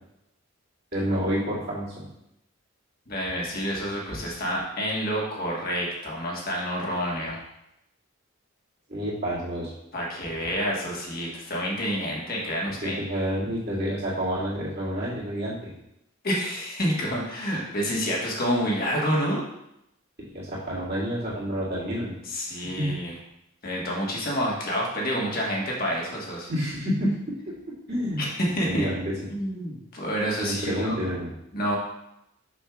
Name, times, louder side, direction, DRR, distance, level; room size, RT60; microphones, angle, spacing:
voice 1, 0.9-2.1 8.9-9.7 12.8-15.7 20.2-22.1 22.8-22.9 26.5-27.1 27.9-28.2 28.6-29.1 30.4-31.3, equal, 50° right, -8 dB, 2.2 m, -28 dB
voice 2, 3.1-7.4 9.9-13.0 16.2-19.4 22.2-23.1 23.6-26.5 28.2-28.9 29.3-31.0 31.5-31.7, equal, 40° left, -3 dB, 1.4 m, -28 dB
6.4 x 6.1 x 2.4 m, 0.83 s
head